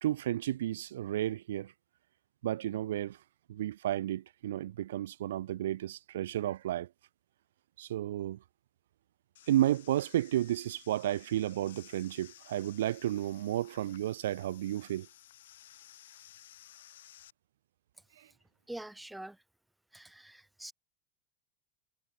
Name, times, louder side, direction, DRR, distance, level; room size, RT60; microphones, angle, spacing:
voice 1, 0.0-1.7 2.4-3.2 3.5-6.9 7.8-8.4 9.5-15.1 18.2-18.3, right 13 dB, 85° right, 0.8 m, -32 dB
sound 1, 9.4-17.3, left 12 dB, 85° left, 6.0 m, -56 dB
voice 2, 18.7-19.4 19.9-20.7, right 1 dB, 5° right, 0.5 m, -45 dB
supercardioid pair, 160°, 0 cm